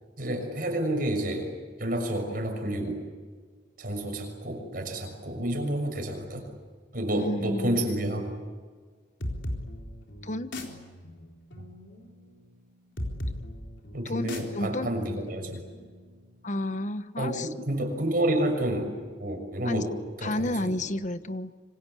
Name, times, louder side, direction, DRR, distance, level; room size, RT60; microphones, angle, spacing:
voice 1, 0.2-1.5 1.8-3.0 3.8-6.5 6.9-8.4 13.9-15.6 17.2-20.7, right 1 dB, 50° right, 3 dB, 6.6 m, -30 dB
voice 2, 7.2-7.8 10.2-10.5 14.0-14.3 14.5-14.9 16.4-17.5 19.6-19.8 20.2-21.5, left 1 dB, 40° left, 12 dB, 1.1 m, -31 dB
sound 1, 9.2-16.6, left 1 dB, 90° left, 4.0 m, -39 dB
26.0 x 25.5 x 8.4 m, 1.5 s
head